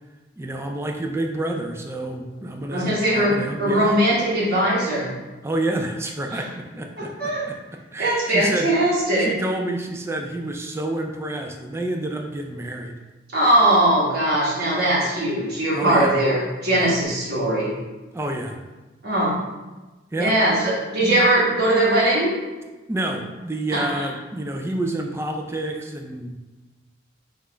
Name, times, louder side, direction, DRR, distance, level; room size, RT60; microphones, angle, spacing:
voice 1, 0.4-4.0 5.4-7.6 7.9-8.7 9.2-13.0 14.9-15.0 15.7-16.2 16.7-16.9 18.1-18.6 20.1-20.4 22.9-26.6, right 1 dB, 15° right, 3 dB, 0.3 m, -29 dB
voice 2, 2.7-5.1 6.3-6.4 7.0-7.4 8.0-9.3 13.3-17.7 19.0-19.4 20.2-22.4 23.7-23.9, right 1 dB, 55° right, -7 dB, 1.2 m, -20 dB
5.5 x 2.4 x 3.3 m, 1.2 s
head